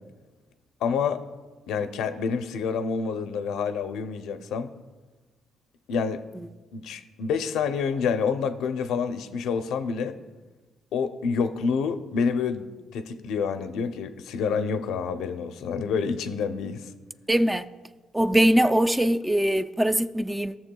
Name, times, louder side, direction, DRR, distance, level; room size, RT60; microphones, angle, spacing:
voice 1, 0.8-1.2 1.7-4.7 5.9-6.2 6.7-10.1 10.9-16.9, left 6 dB, 85° left, 8 dB, 0.6 m, -28 dB
voice 2, 17.3-17.7 18.1-20.6, right 1 dB, 10° right, 10 dB, 0.3 m, -22 dB
16.5 x 6.9 x 2.3 m, 1.3 s
cardioid pair, 90°, 0 cm